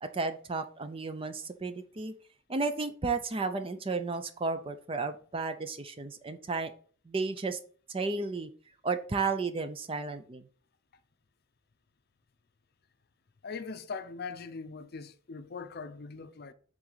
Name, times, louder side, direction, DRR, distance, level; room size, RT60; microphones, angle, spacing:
voice 1, 0.0-2.1 2.5-6.7 7.1-7.6 7.9-8.5 8.8-10.4, right 4 dB, 25° right, 0.5 m, -33 dB
voice 2, 13.4-16.5, left 4 dB, 50° left, 0.5 m, -41 dB
7.4 x 3.8 x 4.0 m
head